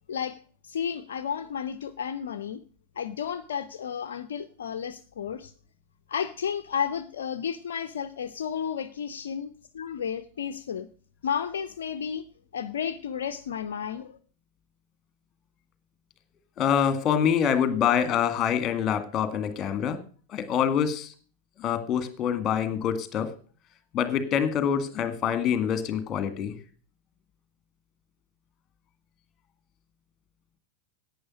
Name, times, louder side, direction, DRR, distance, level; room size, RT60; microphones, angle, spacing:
voice 1, 0.1-2.6 3.0-5.5 6.1-10.9 11.2-12.2 12.5-14.2, left 7 dB, 65° left, 9 dB, 0.7 m, -32 dB
voice 2, 16.6-20.0 20.3-21.1 21.6-23.3 23.9-26.5, left 8 dB, 30° left, 10 dB, 2.0 m, -25 dB
11.0 x 8.9 x 6.2 m, 0.41 s
figure-of-eight pair, 90°, 0 cm